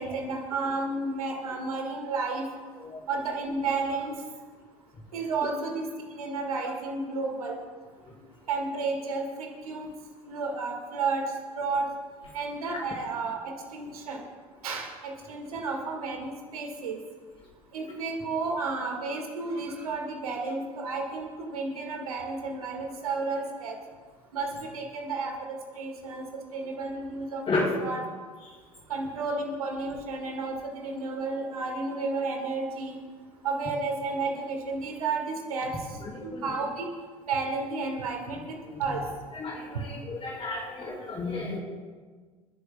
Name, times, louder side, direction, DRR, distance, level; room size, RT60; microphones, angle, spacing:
voice 1, 0.0-2.4 3.1-4.1 5.1-5.9 6.1-7.6 8.5-9.9 10.3-11.3 11.6-11.9 12.3-14.2 14.6-17.0 17.7-23.8 24.3-26.2 26.5-27.5 27.8-28.0 28.9-33.0 33.4-36.9 37.3-38.5 38.8-39.0, right 3 dB, 80° right, 2 dB, 1.9 m, -32 dB
voice 2, 36.1-36.4 39.3-41.6, left 3 dB, 30° left, -3 dB, 4.5 m, -32 dB
29.5 x 11.5 x 2.3 m, 1.5 s
figure-of-eight pair, 70°, 18 cm